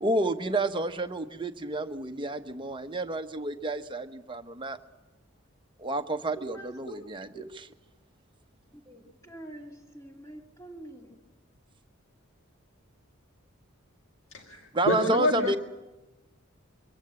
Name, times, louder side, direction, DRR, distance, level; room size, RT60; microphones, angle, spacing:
voice 1, 0.0-4.8 5.8-7.7 14.7-15.6, right 1 dB, 25° right, 6 dB, 1.0 m, -30 dB
voice 2, 6.4-7.0 7.3-7.4 8.9-11.2, right 2 dB, 15° left, 1 dB, 2.6 m, -45 dB
voice 3, 14.3-15.6, left 1 dB, 70° left, 3 dB, 1.9 m, -28 dB
23.5 x 17.0 x 8.8 m, 1.0 s
head